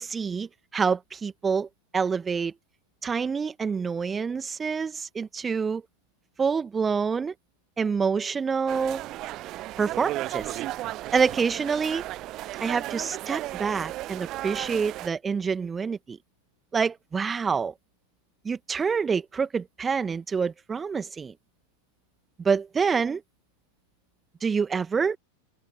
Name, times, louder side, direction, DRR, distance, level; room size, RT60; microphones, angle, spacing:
voice 1, 0.0-1.7 1.9-2.5 3.0-5.8 6.4-7.3 7.8-9.0 9.8-10.5 11.1-12.0 12.6-16.2 16.7-17.7 18.4-21.3 22.4-23.2 24.4-25.2, right 5 dB, 15° right, 2.0 m, -27 dB
sound 1, 8.7-15.1, right 16 dB, 35° right, 0.5 m, -34 dB
open air
figure-of-eight pair, 90°, 0 cm